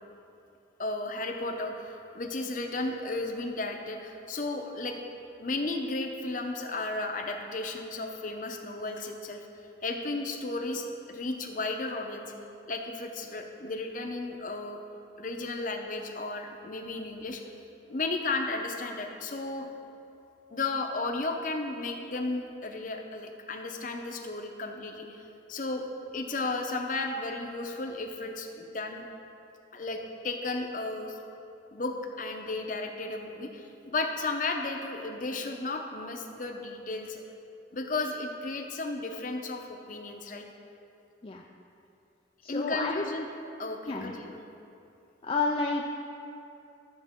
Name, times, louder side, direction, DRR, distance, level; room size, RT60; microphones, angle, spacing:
voice 1, 0.8-5.0 5.4-9.4 9.8-12.3 12.7-14.8 15.2-17.4 17.9-19.7 20.5-25.2 25.5-25.9 26.1-29.1 29.7-31.2 31.7-37.2 37.7-40.4 42.5-43.3 43.6-44.4, left 2 dB, 45° left, 3 dB, 0.7 m, -34 dB
voice 2, 42.4-43.0 43.9-44.1 45.2-46.0, left 3 dB, 30° left, 0 dB, 0.4 m, -30 dB
12.5 x 7.0 x 3.7 m, 2.7 s
head